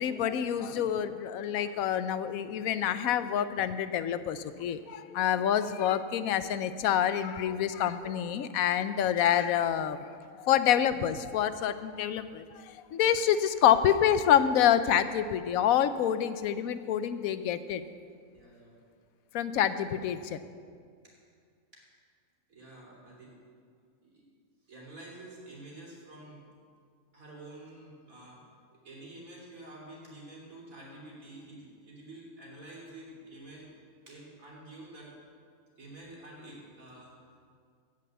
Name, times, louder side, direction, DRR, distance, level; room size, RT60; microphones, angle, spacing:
voice 1, 0.0-17.8 19.3-20.4, left 9 dB, 90° left, 12 dB, 1.1 m, -27 dB
voice 2, 18.3-18.7 21.0-21.1 21.7-21.8 22.5-23.3 24.0-24.2 24.7-26.4 27.1-28.4 28.7-33.7 34.1-35.1 35.8-37.1, right 2 dB, 85° right, -4 dB, 3.7 m, -48 dB
16.0 x 5.5 x 7.9 m, 2.1 s
omnidirectional pair, 1.4 m